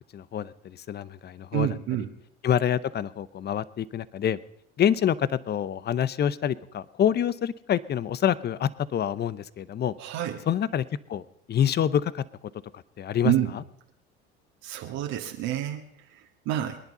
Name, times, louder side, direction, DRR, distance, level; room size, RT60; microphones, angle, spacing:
voice 1, 0.1-1.8 2.4-4.4 4.8-10.0 10.5-11.2 11.5-12.2 12.7-13.6, left 9 dB, 35° left, 18 dB, 0.8 m, -27 dB
voice 2, 1.5-2.1 10.0-10.4 13.2-13.5 14.6-16.8, right 12 dB, 60° right, 2 dB, 1.9 m, -28 dB
23.5 x 10.5 x 5.5 m, 0.72 s
hypercardioid pair, 75°, 31 cm